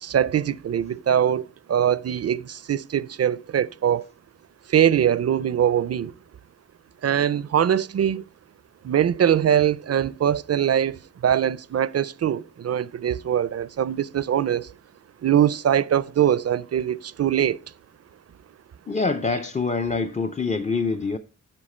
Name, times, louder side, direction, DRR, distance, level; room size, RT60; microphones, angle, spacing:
voice 1, 0.0-4.0 4.7-6.1 7.0-8.2 8.8-14.7 15.2-17.6, right 9 dB, 55° right, 0.4 m, -22 dB
voice 2, 18.9-21.2, left 4 dB, 25° left, 0.4 m, -25 dB
9.8 x 5.9 x 4.3 m
wide cardioid pair, 85°, 30 cm